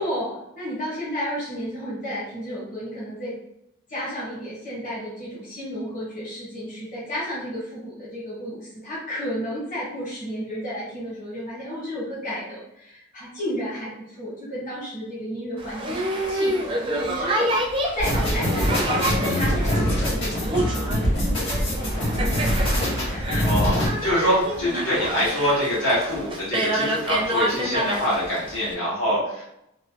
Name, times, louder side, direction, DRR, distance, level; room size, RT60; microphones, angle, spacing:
voice 1, 0.0-3.3 3.9-18.9 19.3-23.6 24.1-24.8, equal, 40° left, -8 dB, 1.0 m, -33 dB
Boat Water vehicle, 15.6-28.7, right 1 dB, 25° right, 0.4 m, -28 dB
sound 1, 18.0-23.9, equal, 60° left, 1.4 m, -24 dB
voice 2, 23.3-23.7 24.0-29.4, equal, 80° left, -7 dB, 1.5 m, -24 dB
3.0 x 2.3 x 2.8 m, 0.79 s
head